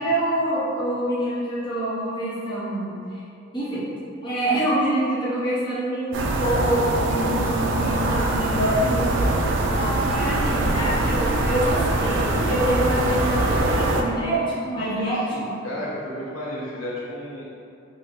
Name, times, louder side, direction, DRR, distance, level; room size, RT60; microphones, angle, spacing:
voice 1, 0.0-3.2 3.5-3.8 4.2-9.2 9.7-15.5, right 1 dB, 25° left, -10 dB, 0.7 m, -26 dB
sound 1, 6.1-14.0, right 2 dB, 65° right, 0.3 m, -23 dB
voice 2, 14.7-17.5, left 1 dB, 80° left, -7 dB, 0.9 m, -34 dB
3.9 x 2.1 x 3.3 m, 2.5 s
head